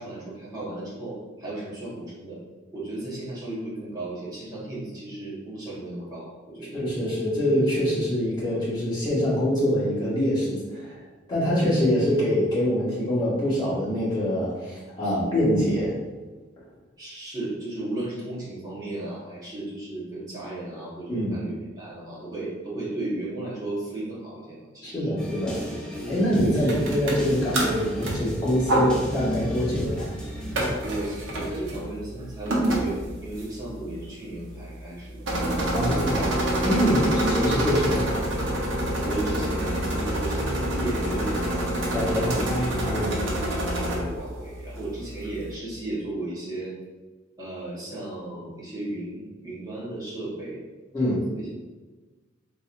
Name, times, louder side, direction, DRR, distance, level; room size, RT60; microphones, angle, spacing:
voice 1, 0.0-2.4 2.7-6.7 15.0-15.1 17.0-25.1 26.6-26.7 30.8-35.2 36.9-37.7 39.1-41.5 42.2-46.7 47.4-50.6 51.0-51.5, right 2 dB, 20° right, -8 dB, 1.2 m, -35 dB
voice 2, 6.7-11.0 11.3-15.9 21.1-21.4 24.8-25.6 26.1-30.1 35.7-36.3 36.6-38.2 41.9-43.2 50.9-51.2, equal, 20° left, -9 dB, 1.5 m, -24 dB
sound 1, 25.2-30.7, equal, 5° left, 0.5 m, -34 dB
sound 2, 26.7-45.5, right 1 dB, 85° right, 0.8 m, -28 dB
4.1 x 3.1 x 2.5 m, 1.2 s
head